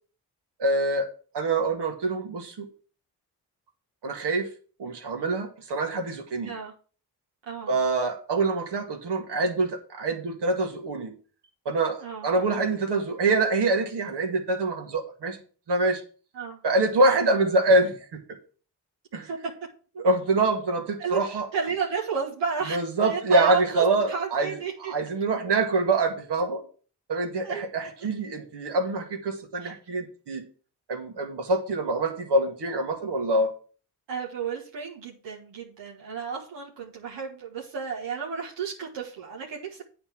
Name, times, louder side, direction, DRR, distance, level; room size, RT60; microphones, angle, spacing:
voice 1, 0.6-1.1 1.3-2.7 4.0-4.5 4.8-6.5 7.7-11.1 11.7-15.4 15.7-16.0 16.6-18.2 19.1-19.3 20.0-21.5 22.7-24.5 24.9-26.6 27.1-30.4 30.9-33.5, right 2 dB, 75° right, 3 dB, 2.0 m, -25 dB
voice 2, 7.5-7.8 12.0-12.3 16.3-16.6 19.2-19.5 21.0-21.2 21.5-24.9 27.4-27.6 29.6-29.7 34.1-39.8, right 6 dB, 90° right, -3 dB, 1.7 m, -32 dB
8.8 x 4.3 x 7.2 m, 0.40 s
cardioid pair, 60°, 42 cm